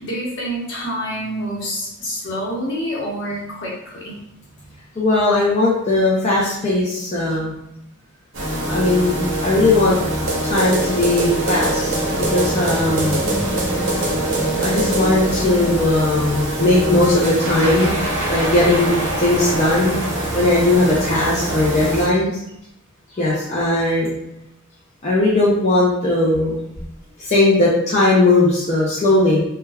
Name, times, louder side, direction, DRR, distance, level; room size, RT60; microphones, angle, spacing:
voice 1, 0.0-4.2 4.6-4.7, equal, 60° left, -4 dB, 0.9 m, -27 dB
voice 2, 5.0-7.5 8.7-10.0 10.4-12.0 12.3-13.2 14.6-18.0 18.3-20.0 20.3-22.3 23.1-24.1 25.0-26.7 27.2-29.4, left 2 dB, 35° left, -7 dB, 0.5 m, -18 dB
sound 1, 8.3-22.1, right 1 dB, 60° right, 0.8 m, -23 dB
sound 2, 11.3-16.3, equal, ahead, 0.9 m, -30 dB
3.3 x 2.2 x 2.2 m, 0.80 s
head